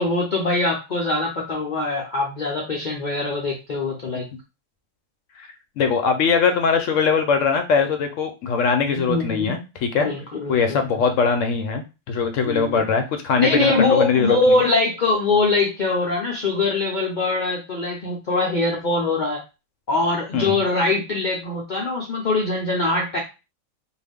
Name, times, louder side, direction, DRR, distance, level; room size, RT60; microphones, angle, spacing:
voice 1, 0.0-4.3 9.1-9.6 10.0-11.0 12.4-12.9 13.4-19.4 19.9-23.2, left 2 dB, 55° left, -1 dB, 0.5 m, -23 dB
voice 2, 5.8-10.1 10.5-14.4 20.3-20.6, left 5 dB, 70° left, 6 dB, 0.9 m, -21 dB
2.6 x 2.3 x 3.5 m, 0.28 s
omnidirectional pair, 1.5 m